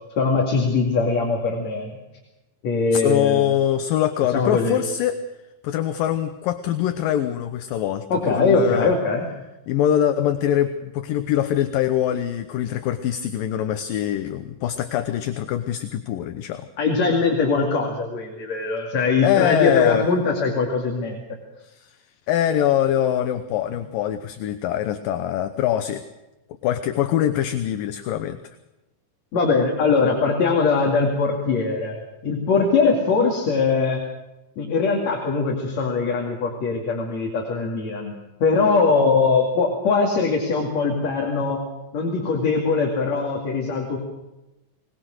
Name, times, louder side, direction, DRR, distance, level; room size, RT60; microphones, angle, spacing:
voice 1, 0.1-2.0 2.6-3.5 4.3-4.8 8.1-9.3 16.8-21.2 29.3-34.0 34.6-38.1 38.4-41.6 41.9-44.0, left 4 dB, 50° left, 0 dB, 3.2 m, -21 dB
voice 2, 2.9-5.2 5.6-8.9 9.7-16.7 19.2-20.1 21.7-22.0 22.3-26.0 26.6-28.4, left 11 dB, 70° left, 9 dB, 2.3 m, -23 dB
21.5 x 20.0 x 6.4 m, 0.99 s
omnidirectional pair, 4.6 m